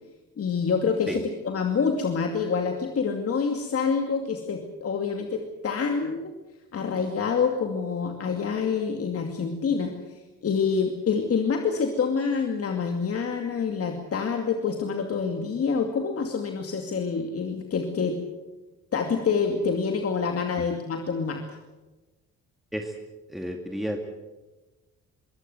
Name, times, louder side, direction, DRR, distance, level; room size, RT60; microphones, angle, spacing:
voice 1, 0.4-6.3 6.7-9.9 10.4-18.2 18.9-21.4, left 5 dB, 50° left, 4 dB, 2.5 m, -27 dB
voice 2, 23.3-24.1, equal, ahead, 3 dB, 2.3 m, -32 dB
23.0 x 17.0 x 8.0 m, 1.1 s
cardioid pair, 90°, 30 cm